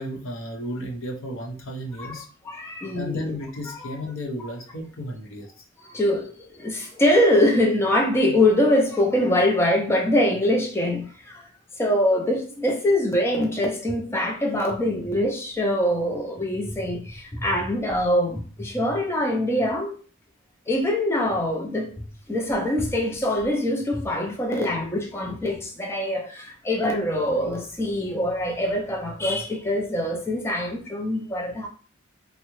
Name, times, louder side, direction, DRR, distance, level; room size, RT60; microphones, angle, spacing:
voice 1, 0.0-2.3 2.9-5.5, equal, 75° left, 0.8 m, -33 dB
voice 2, 2.0-3.4 3.8-3.9 5.8-6.3 6.6-11.4 11.8-19.9 20.7-21.9 22.3-31.7, left 1 dB, 10° left, 0.4 m, -23 dB
3.5 x 2.0 x 3.0 m
head